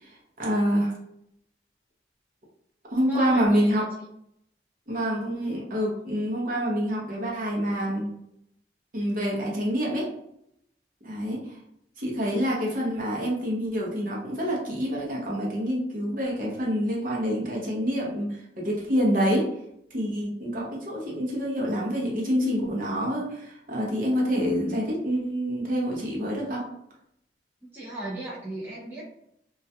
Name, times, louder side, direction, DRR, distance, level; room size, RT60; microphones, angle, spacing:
voice 1, 0.0-0.9 2.9-3.9 4.9-8.1 8.9-10.1 11.0-11.4 12.0-19.5 19.9-26.6, equal, 50° right, -3 dB, 0.7 m, -27 dB
voice 2, 3.0-3.8 27.7-29.1, right 1 dB, 10° right, -7 dB, 0.4 m, -37 dB
2.3 x 2.2 x 2.7 m, 0.75 s
head